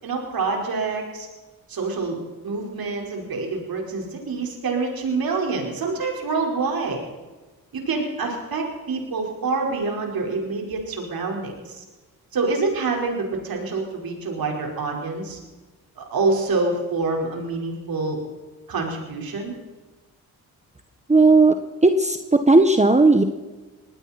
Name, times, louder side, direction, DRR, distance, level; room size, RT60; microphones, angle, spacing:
voice 1, 0.0-1.3 1.7-2.2 2.4-7.0 7.7-11.8 12.3-15.4 16.0-18.2 18.7-19.5, right 3 dB, 70° right, 1 dB, 5.0 m, -26 dB
voice 2, 21.1-21.6 21.8-23.2, right 3 dB, 20° right, 7 dB, 1.5 m, -15 dB
20.0 x 16.5 x 4.4 m, 1.2 s
supercardioid pair, 55°, 37 cm